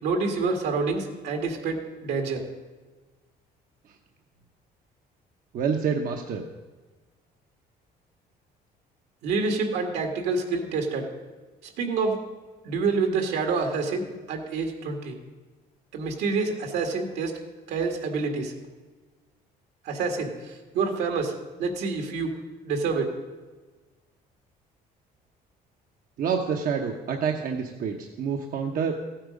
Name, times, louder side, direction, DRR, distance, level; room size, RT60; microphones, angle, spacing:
voice 1, 0.0-2.4 9.2-11.1 11.6-12.2 12.6-15.2 15.9-17.3 17.7-18.5 19.8-21.3 21.6-22.4 22.6-23.1, right 4 dB, 80° right, 4 dB, 1.9 m, -27 dB
voice 2, 5.5-6.5 26.2-28.9, right 6 dB, 55° right, 3 dB, 0.9 m, -27 dB
15.0 x 8.7 x 5.2 m, 1.3 s
cardioid pair, 110°, 17 cm